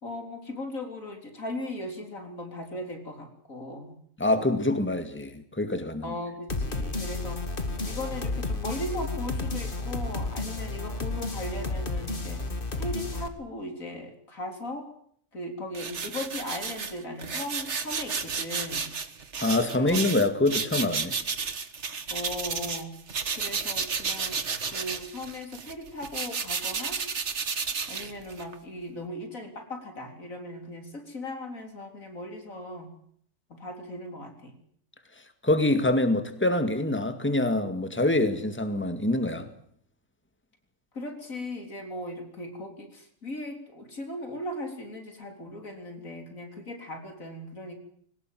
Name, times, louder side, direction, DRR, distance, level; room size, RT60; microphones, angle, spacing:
voice 1, 0.0-3.9 6.0-7.5 7.9-12.4 12.8-14.9 15.3-18.9 19.7-20.1 22.1-23.0 23.3-24.4 24.7-27.0 27.9-32.9 33.5-34.5 40.9-47.8, left 1 dB, 85° left, 5 dB, 4.2 m, -38 dB
voice 2, 4.2-6.1 19.4-21.1 35.4-39.5, left 2 dB, 10° left, 8 dB, 2.1 m, -25 dB
sound 1, 6.5-13.3, left 2 dB, 40° left, 2.3 m, -32 dB
sound 2, 15.7-22.8 23.1-28.6, right 5 dB, 60° right, 1.8 m, -32 dB
22.5 x 18.5 x 9.3 m, 0.66 s
omnidirectional pair, 1.4 m